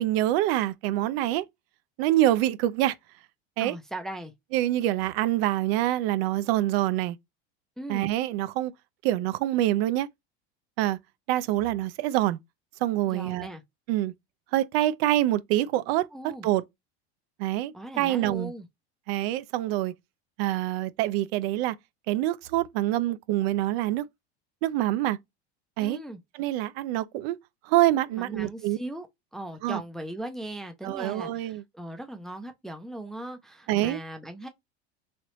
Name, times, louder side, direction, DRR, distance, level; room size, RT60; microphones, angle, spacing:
voice 1, 0.0-1.5 2.0-2.9 3.6-3.8 4.5-7.2 7.9-8.7 9.0-10.1 10.8-11.0 11.3-12.4 12.8-13.5 13.9-14.1 14.5-16.6 17.4-18.5 19.1-19.9 20.4-21.8 22.1-24.1 24.6-25.2 25.8-26.0 26.4-27.4 27.6-28.8 29.6-29.8 30.8-31.6 33.7-34.0, right 14 dB, 65° right, 0.5 m, -26 dB
voice 2, 3.6-4.3 7.8-8.1 13.1-13.6 16.1-16.5 17.7-18.7 25.8-26.2 28.1-29.1 29.3-34.5, right 1 dB, ahead, 0.4 m, -38 dB
3.2 x 2.9 x 2.9 m
supercardioid pair, 120°, 33 cm